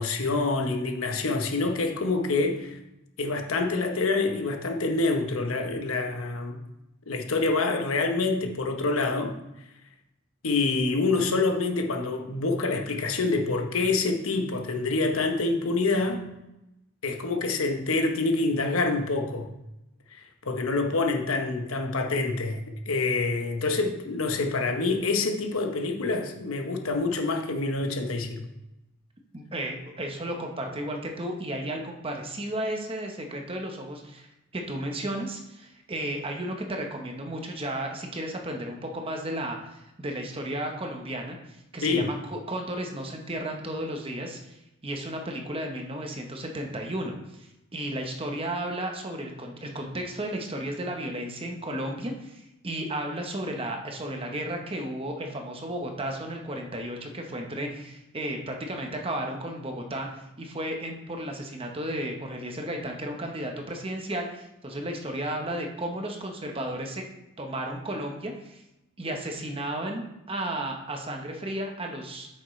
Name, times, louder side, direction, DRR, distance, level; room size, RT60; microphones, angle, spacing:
voice 1, 0.0-2.8 3.2-6.6 7.1-9.3 10.4-16.2 17.0-19.5 20.1-28.5 41.8-42.1, left 3 dB, 90° left, 4 dB, 1.0 m, -26 dB
voice 2, 29.3-34.3 34.5-67.0 67.4-68.6 69.0-72.3, right 1 dB, 25° right, 2 dB, 1.0 m, -34 dB
8.7 x 6.5 x 3.2 m, 0.91 s
head